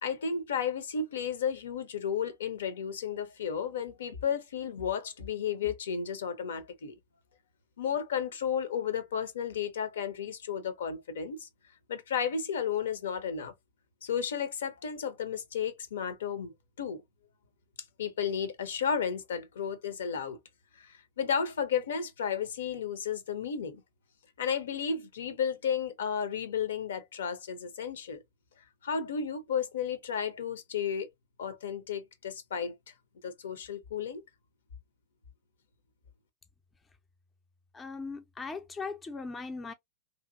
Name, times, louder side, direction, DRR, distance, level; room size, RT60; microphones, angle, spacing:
voice 1, 0.0-7.0 7.8-11.5 11.9-13.5 14.0-16.5 16.8-17.0 18.0-20.4 20.8-23.8 24.4-28.2 28.8-31.1 31.4-32.7 33.2-34.2, left 7 dB, 65° left, 0.6 m, -33 dB
voice 2, 37.7-39.7, left 4 dB, 15° left, 0.4 m, -39 dB
2.8 x 2.4 x 2.4 m
figure-of-eight pair, 90°, 0 cm